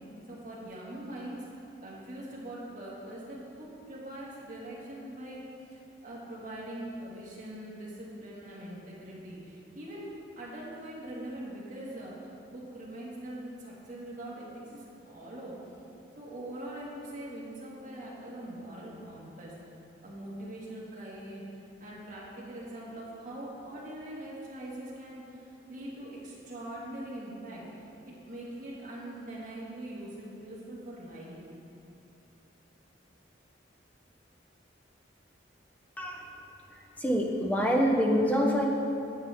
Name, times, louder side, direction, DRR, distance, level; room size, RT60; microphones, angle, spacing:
voice 1, 0.3-1.4 1.8-5.4 5.7-10.1 10.4-12.1 12.5-15.6 16.2-19.5 20.0-21.5 21.8-31.4, right 1 dB, 45° right, -6 dB, 1.8 m, -42 dB
voice 2, 37.0-38.7, equal, 10° left, 0 dB, 0.7 m, -25 dB
9.6 x 7.3 x 3.5 m, 2.8 s
head